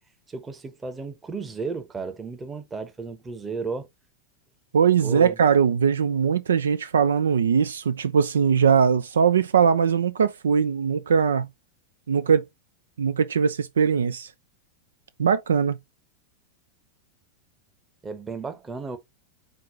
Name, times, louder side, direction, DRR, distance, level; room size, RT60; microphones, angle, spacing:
voice 1, 0.3-3.9 5.0-5.4 18.0-19.0, right 4 dB, 15° right, 0.9 m, -34 dB
voice 2, 4.7-11.5 12.1-12.4 13.0-14.3 15.2-15.8, right 6 dB, 65° right, 0.3 m, -21 dB
4.6 x 4.0 x 2.8 m
figure-of-eight pair, 90°, 0 cm